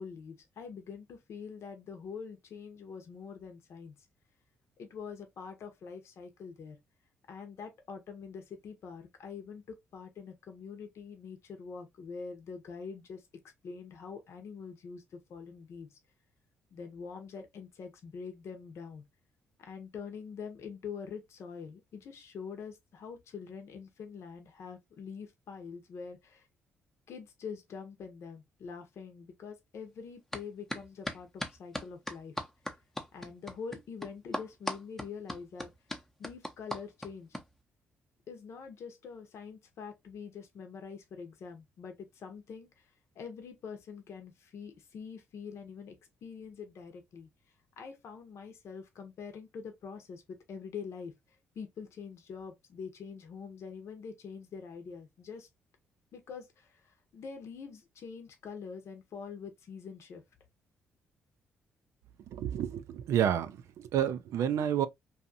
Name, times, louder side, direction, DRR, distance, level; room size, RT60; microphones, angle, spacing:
voice 1, 0.0-3.9 4.8-6.8 7.3-13.3 13.6-16.0 16.7-19.0 19.6-26.5 27.1-32.4 33.1-35.7 36.2-37.3 38.3-46.0 46.2-47.3 47.8-51.1 51.5-55.5 56.1-60.2, left 6 dB, 65° left, 0.8 m, -45 dB
sound 1, 30.3-30.4 30.7-37.4, left 1 dB, 5° left, 0.7 m, -37 dB
voice 2, 62.3-64.9, right 10 dB, 75° right, 0.4 m, -30 dB
2.7 x 2.4 x 2.5 m
supercardioid pair, 60°, 5 cm